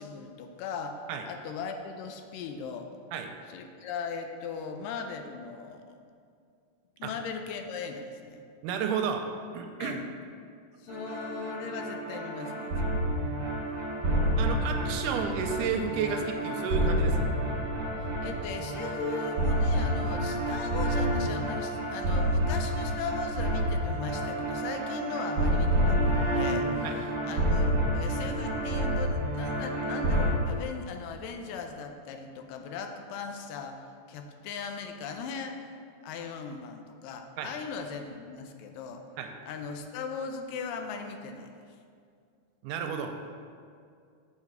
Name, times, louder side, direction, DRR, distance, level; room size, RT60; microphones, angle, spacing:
voice 1, 0.0-1.0 1.3-2.9 3.5-6.0 7.0-8.4 9.8-10.0 10.8-12.7 18.2-33.8 34.1-35.7 36.0-39.0 39.5-41.5, left 5 dB, 85° left, 5 dB, 2.2 m, -38 dB
voice 2, 8.6-9.2 9.5-10.0 14.4-17.3 26.8-27.0 37.4-37.5 39.2-39.3 42.6-43.1, right 6 dB, 80° right, 5 dB, 2.0 m, -31 dB
sound 1, 10.9-30.3, right 1 dB, 35° right, 1.7 m, -29 dB
7.1 x 4.1 x 6.5 m, 2.3 s
omnidirectional pair, 3.8 m